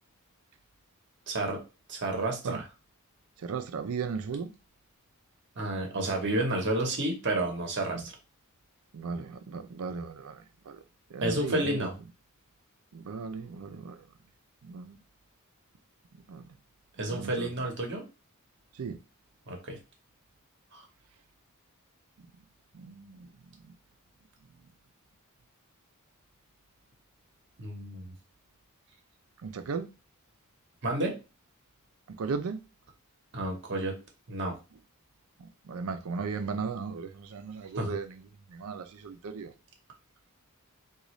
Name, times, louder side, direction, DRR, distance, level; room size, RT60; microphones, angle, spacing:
voice 1, 1.3-1.6 1.9-2.7 5.6-8.1 11.2-11.9 17.0-18.0 19.5-19.8 20.7-20.8 27.6-28.1 30.8-31.2 33.3-34.0 34.3-34.6 37.7-38.0, right 1 dB, 55° right, 0.9 m, -30 dB
voice 2, 3.4-4.5 7.9-8.0 8.9-10.4 10.7-10.8 11.1-11.9 12.9-14.0 14.6-15.0 16.3-16.4 17.1-17.5 18.8-19.0 22.7-23.2 29.4-29.9 32.2-32.6 35.4-38.1 38.5-39.5, right 5 dB, 70° right, 0.4 m, -36 dB
3.8 x 2.3 x 3.0 m
head